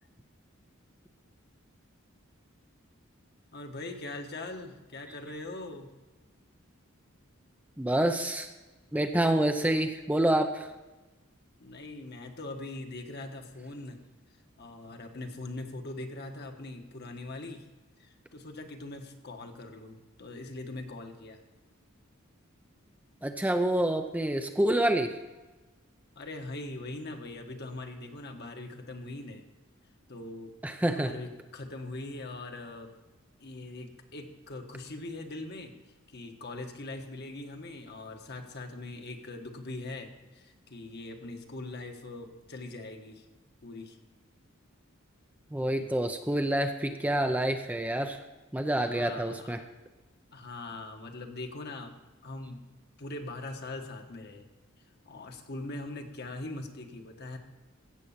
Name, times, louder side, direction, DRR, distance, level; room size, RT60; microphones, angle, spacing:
voice 1, 3.5-5.9 11.6-14.0 14.6-17.6 18.0-21.4 26.2-29.4 30.1-30.5 30.9-32.9 33.4-35.7 36.1-43.2 43.6-44.0 45.6-45.8 48.8-49.6 50.3-51.9 52.2-52.6 53.0-54.5 55.1-57.4, left 2 dB, 50° left, 4 dB, 1.4 m, -41 dB
voice 2, 7.8-8.5 8.9-10.7 23.2-25.2 30.6-31.1 45.5-48.2 48.5-49.6, right 1 dB, 5° right, 6 dB, 0.5 m, -27 dB
16.0 x 7.6 x 5.7 m, 1.2 s
head